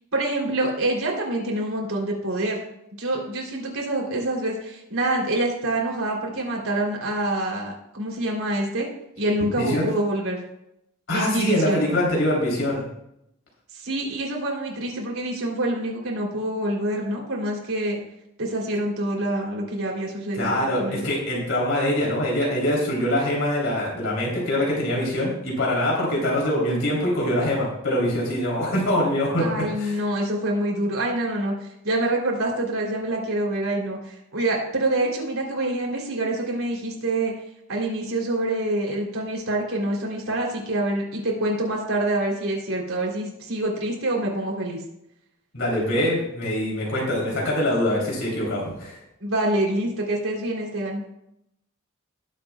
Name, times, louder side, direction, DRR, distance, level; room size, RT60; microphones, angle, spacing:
voice 1, 0.1-2.6 3.0-8.9 9.2-10.4 11.1-11.8 13.7-18.0 18.4-21.0 29.4-37.3 37.7-44.8 49.2-51.0, right 1 dB, 75° right, -2 dB, 3.3 m, -26 dB
voice 2, 9.6-9.9 11.1-12.8 20.3-29.5 29.8-30.0 45.5-49.0, left 1 dB, 65° left, -4 dB, 3.4 m, -24 dB
19.0 x 7.6 x 2.3 m, 0.81 s
head